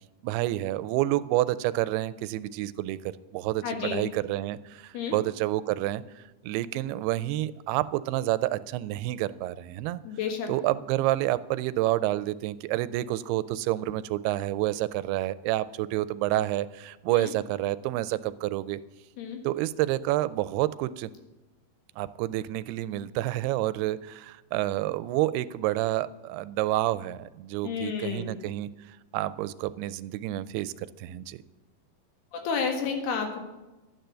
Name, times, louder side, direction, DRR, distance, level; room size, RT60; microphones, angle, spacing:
voice 1, 0.2-10.0 10.5-18.8 19.4-21.1 22.0-31.4, right 15 dB, 90° right, 17 dB, 2.6 m, -29 dB
voice 2, 3.6-4.0 4.9-5.2 10.1-10.5 17.1-17.3 19.2-19.4 27.6-28.3 32.3-33.4, left 6 dB, 85° left, 4 dB, 3.7 m, -31 dB
12.5 x 9.1 x 6.7 m, 1.1 s
omnidirectional pair, 4.5 m